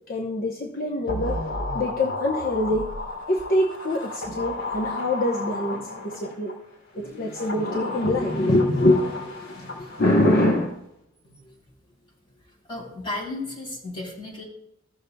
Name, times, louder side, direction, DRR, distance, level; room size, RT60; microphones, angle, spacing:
voice 1, 0.1-1.4 1.7-2.9 3.3-6.5 6.9-10.7, left 1 dB, 50° left, 0 dB, 0.9 m, -24 dB
sound 1, 1.1-6.5 7.2-10.4 10.7-10.8, left 2 dB, 80° left, 3.1 m, -33 dB
voice 2, 12.7-14.5, left 2 dB, 25° left, -4 dB, 3.6 m, -34 dB
16.0 x 6.7 x 2.3 m, 0.81 s
head